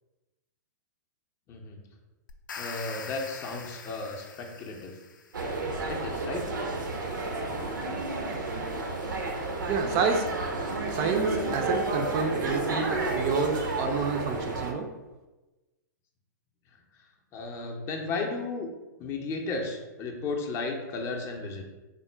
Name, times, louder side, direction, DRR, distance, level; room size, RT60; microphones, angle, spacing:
sound 1, 2.3-5.5, left 5 dB, 85° left, 0.4 m, -43 dB
voice 1, 2.6-4.9 5.9-6.5 9.0-9.2 17.3-18.7 19.0-21.6, left 3 dB, 25° left, 2 dB, 0.5 m, -34 dB
sound 2, 5.3-14.7, right 2 dB, 90° right, 0.7 m, -31 dB
voice 2, 9.7-10.3 10.9-14.9, right 5 dB, 35° right, 4 dB, 0.4 m, -29 dB
3.6 x 2.1 x 4.3 m, 1.1 s
hypercardioid pair, 130°, 10 cm